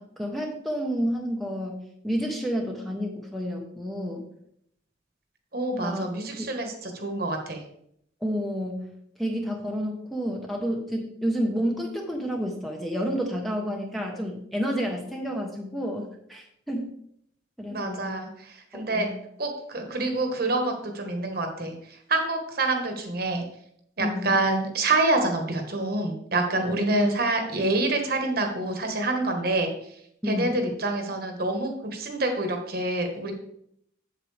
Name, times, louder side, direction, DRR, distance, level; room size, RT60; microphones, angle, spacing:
voice 1, 0.0-4.2 5.8-6.1 6.4-6.5 8.2-8.9 9.2-16.9 17.6-18.1 18.7-19.1 24.0-24.4 26.5-26.8 30.2-30.6, equal, ahead, 1 dB, 1.0 m, -30 dB
voice 2, 5.5-7.6 17.7-19.1 19.4-21.7 22.1-23.4 24.0-29.7 30.3-33.3, right 2 dB, 50° right, 4 dB, 1.4 m, -27 dB
8.1 x 7.6 x 3.3 m, 0.71 s
head